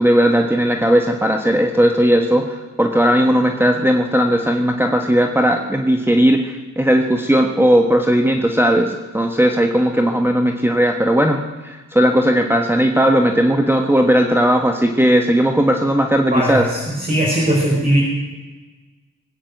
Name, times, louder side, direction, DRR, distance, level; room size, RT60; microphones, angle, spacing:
voice 1, 0.0-16.7, equal, 5° right, 4 dB, 1.3 m, -16 dB
voice 2, 16.3-18.0, right 1 dB, 25° right, -4 dB, 4.6 m, -19 dB
20.0 x 8.9 x 7.8 m, 1.2 s
cardioid pair, 80°, 32 cm